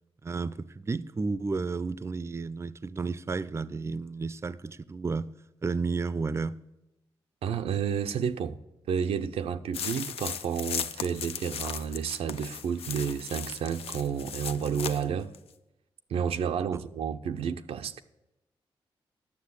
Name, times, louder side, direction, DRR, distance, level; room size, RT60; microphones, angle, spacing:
voice 1, 0.2-5.3 5.6-6.6 16.7-16.8, right 4 dB, 30° right, 0.4 m, -32 dB
voice 2, 7.4-8.6 8.9-15.3 16.1-18.0, right 7 dB, 85° right, 0.5 m, -31 dB
sound 1, 9.7-15.0 15.3-15.4, left 8 dB, 80° left, 0.5 m, -37 dB
9.6 x 6.7 x 8.2 m
cardioid pair, 60°, 10 cm